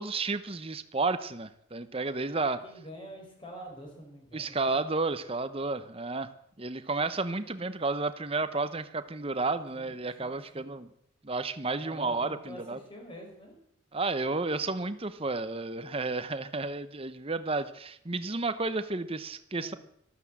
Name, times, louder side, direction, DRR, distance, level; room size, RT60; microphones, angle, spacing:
voice 1, 0.0-2.6 4.3-6.3 6.6-10.9 11.2-12.8 13.9-19.7, right 3 dB, 25° right, 12 dB, 0.8 m, -32 dB
voice 2, 2.4-4.7 7.3-7.5 9.7-10.7 11.8-13.6 19.5-19.8, equal, 25° left, 1 dB, 4.9 m, -47 dB
13.5 x 13.0 x 7.5 m, 0.72 s
head